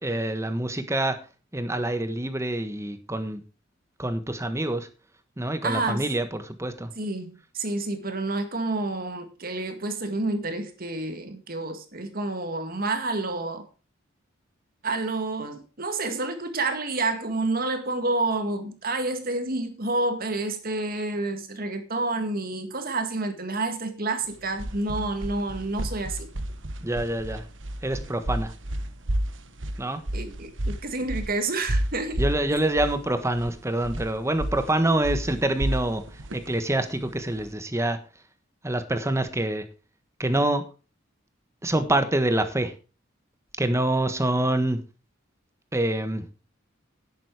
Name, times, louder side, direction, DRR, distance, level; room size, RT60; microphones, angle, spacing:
voice 1, 0.0-1.2 1.5-3.4 4.0-4.9 5.4-6.9 26.8-27.4 27.8-28.5 29.8-30.0 32.2-36.0 36.3-38.0 38.6-39.6 40.2-40.6 41.6-42.7 43.6-44.8 45.7-46.3, right 1 dB, 15° right, 1.4 m, -26 dB
voice 2, 5.6-6.0 7.0-13.7 14.8-26.3 30.1-32.2 32.5-32.6, right 2 dB, 50° right, 2.0 m, -29 dB
sound 1, 24.2-37.5, right 1 dB, 75° right, 1.2 m, -32 dB
10.5 x 9.1 x 4.9 m
head